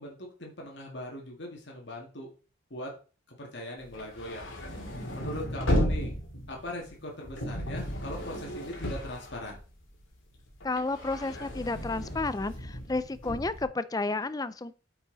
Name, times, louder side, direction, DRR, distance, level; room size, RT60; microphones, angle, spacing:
voice 1, 0.0-2.3 2.7-2.9 3.3-4.5 5.1-6.1 6.5-9.6, left 1 dB, 55° left, -1 dB, 2.1 m, -40 dB
sound 1, 3.9-10.0 10.3-13.6, equal, 75° left, 2.5 m, -34 dB
voice 2, 10.6-14.7, left 3 dB, 20° left, 14 dB, 0.4 m, -31 dB
8.8 x 5.8 x 4.0 m, 0.36 s
head